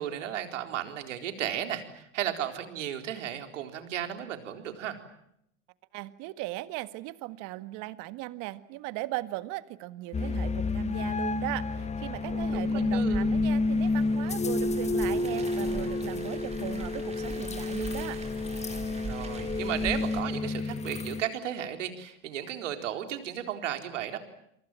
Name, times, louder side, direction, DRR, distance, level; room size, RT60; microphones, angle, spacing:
voice 1, 0.0-5.0 12.3-13.3 19.1-24.2, right 10 dB, 75° right, 6 dB, 4.2 m, -34 dB
voice 2, 5.9-18.2, right 18 dB, 55° right, 13 dB, 1.8 m, -38 dB
sound 1, 10.1-21.2, left 3 dB, 20° left, 1.5 m, -30 dB
Car, 12.1-20.2, right 3 dB, 15° right, 5.2 m, -41 dB
29.5 x 24.0 x 7.4 m, 0.75 s
hypercardioid pair, 95°, 37 cm